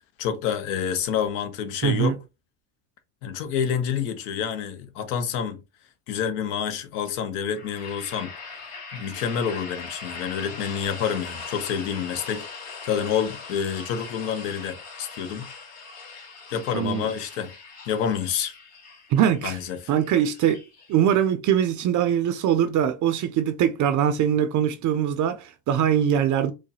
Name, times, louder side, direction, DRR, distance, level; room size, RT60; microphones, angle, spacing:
voice 1, 0.2-2.2 3.2-5.6 6.1-8.3 8.9-12.4 12.8-15.5 16.5-17.5 17.9-18.5 19.4-19.8, left 8 dB, 75° left, 0.9 m, -28 dB
voice 2, 1.8-2.1 16.7-17.0 19.1-19.6 19.9-20.6 20.9-26.5, right 9 dB, 45° right, 0.5 m, -22 dB
sound 1, 7.5-21.3, left 4 dB, 35° left, 2.0 m, -41 dB
4.8 x 2.1 x 2.8 m
supercardioid pair, 115°, 44 cm